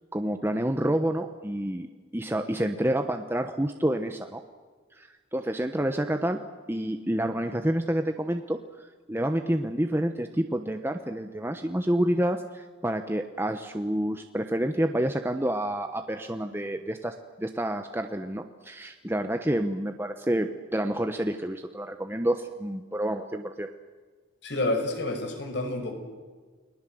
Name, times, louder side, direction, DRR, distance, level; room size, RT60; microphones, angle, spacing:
voice 1, 0.1-4.4 4.9-6.4 6.7-23.7, right 1 dB, 10° right, 6 dB, 1.1 m, -28 dB
voice 2, 24.4-25.9, left 2 dB, 60° left, 5 dB, 5.8 m, -29 dB
29.5 x 21.0 x 7.8 m, 1.5 s
head